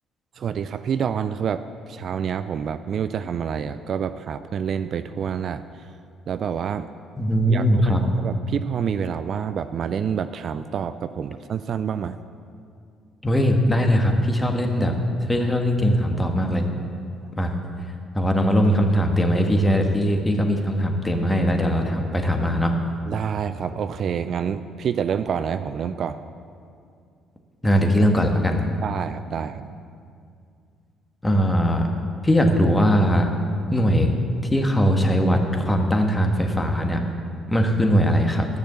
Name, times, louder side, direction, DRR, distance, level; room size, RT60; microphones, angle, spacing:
voice 1, 0.4-1.6 1.9-5.6 6.3-6.9 7.5-12.2 23.1-26.2 28.8-29.7, right 7 dB, 55° right, 12 dB, 0.3 m, -27 dB
voice 2, 7.2-8.0 13.2-14.9 15.2-16.7 17.3-17.5 18.1-22.7 27.6-28.7 31.2-31.9 32.2-33.3 33.7-34.1 34.5-37.0 37.5-38.5, equal, 15° left, 3 dB, 1.6 m, -20 dB
12.0 x 6.7 x 7.0 m, 2.3 s
hypercardioid pair, 50°, 0 cm